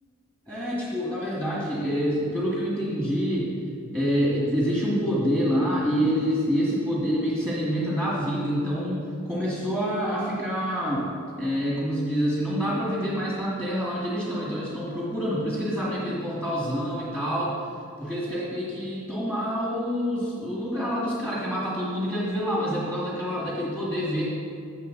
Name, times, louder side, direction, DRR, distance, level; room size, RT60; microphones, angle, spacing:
voice 1, 0.5-3.5 3.9-11.1 11.4-17.5 18.0-24.2, equal, 10° right, -7 dB, 2.0 m, -27 dB
14.0 x 6.9 x 4.0 m, 2.4 s
head